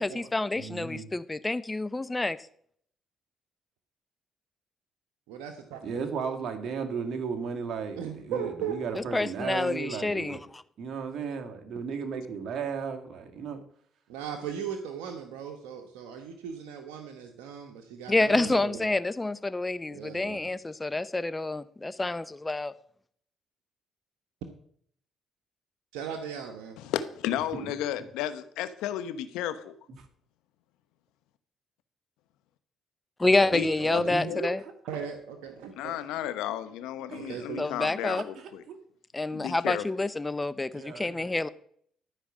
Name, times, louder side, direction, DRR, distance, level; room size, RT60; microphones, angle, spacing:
voice 1, 0.0-2.4 9.1-10.6 18.1-22.7 33.2-34.6 37.6-38.2 39.1-41.5, left 2 dB, 20° left, 15 dB, 0.7 m, -28 dB
voice 2, 0.6-1.1 5.8-10.4 10.8-13.6 27.5-27.7 33.9-34.5 37.1-37.5 37.8-37.9 38.2-38.8 40.7-41.3, right 6 dB, 60° right, 5 dB, 1.9 m, -35 dB
voice 3, 5.3-5.8 8.0-8.7 14.1-18.8 19.9-20.4 25.9-26.8 33.2-34.1 34.9-36.0 37.1-37.7, right 7 dB, 90° right, 3 dB, 1.1 m, -38 dB
voice 4, 26.8-29.8 33.5-34.5 35.8-38.6 39.3-39.8, left 11 dB, 85° left, 12 dB, 0.9 m, -33 dB
12.5 x 5.0 x 7.3 m, 0.63 s
supercardioid pair, 70°, 0 cm